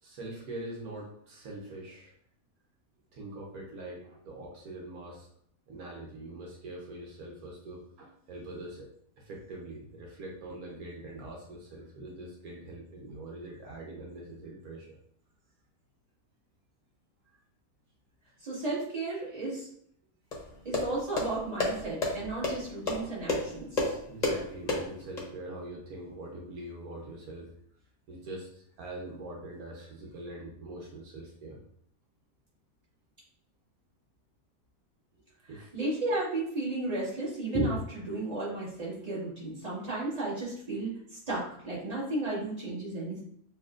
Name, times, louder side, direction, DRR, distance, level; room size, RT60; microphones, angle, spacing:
voice 1, 0.0-2.1 3.1-5.3 5.7-8.9 9.2-15.0 24.1-27.5 28.1-31.6 35.5-35.7, right 1 dB, 85° right, -1 dB, 1.3 m, -43 dB
voice 2, 18.4-19.7 20.6-24.0 35.4-43.2, right 2 dB, 25° right, -9 dB, 2.1 m, -33 dB
sound 1, 20.3-25.2, left 2 dB, 35° left, 0.9 m, -32 dB
6.9 x 2.8 x 2.4 m, 0.66 s
omnidirectional pair, 1.5 m